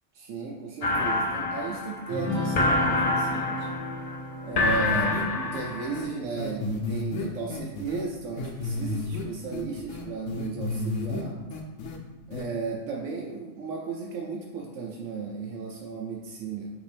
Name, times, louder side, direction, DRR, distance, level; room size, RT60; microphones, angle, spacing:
voice 1, 0.2-3.7 4.4-11.4 12.3-16.7, right 4 dB, 85° right, -1 dB, 0.9 m, -35 dB
sound 1, 0.8-6.1, left 2 dB, 60° left, 0.4 m, -27 dB
sound 2, 2.1-7.7, left 2 dB, 65° right, 1.1 m, -35 dB
sound 3, 4.6-5.2 5.5-5.6 5.9-6.0 6.4-8.0 8.4-9.2 9.5-11.2 11.5-12.0 12.3-12.4, left 3 dB, 85° left, 1.0 m, -32 dB
5.2 x 3.0 x 3.3 m, 1.2 s
omnidirectional pair, 1.3 m